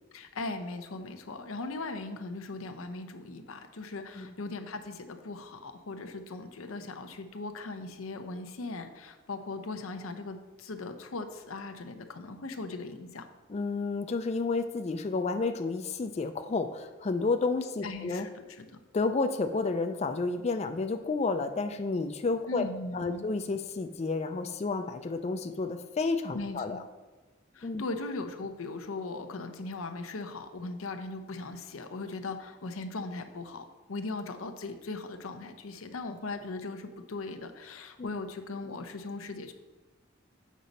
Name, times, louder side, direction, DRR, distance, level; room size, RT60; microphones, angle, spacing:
voice 1, 0.1-13.3 17.8-18.8 22.5-23.3 26.3-26.8 27.5-39.5, left 3 dB, 90° left, 7 dB, 0.7 m, -39 dB
voice 2, 13.5-18.3 18.9-22.6 22.9-26.8 27.6-27.8 38.0-38.1, left 3 dB, 30° left, 7 dB, 0.4 m, -31 dB
7.4 x 5.2 x 4.0 m, 1.2 s
head